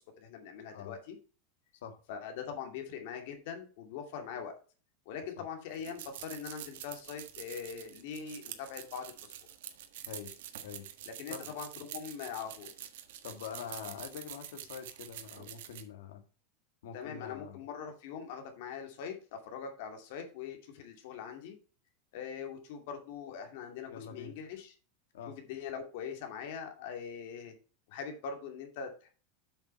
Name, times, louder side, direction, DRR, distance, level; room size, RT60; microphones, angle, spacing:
voice 1, 0.2-1.2 2.1-4.5 5.1-9.3 11.1-12.7 16.9-21.6 22.1-24.7 25.3-27.5 27.9-29.1, left 7 dB, 55° left, 2.4 m, -42 dB
sound 1, 5.7-15.8, right 11 dB, 70° right, 1.5 m, -46 dB
voice 2, 13.2-16.2 16.8-17.6 23.9-24.4 25.1-25.4, left 7 dB, 80° left, 2.0 m, -45 dB
8.1 x 6.5 x 4.4 m
supercardioid pair, 175°, 0 cm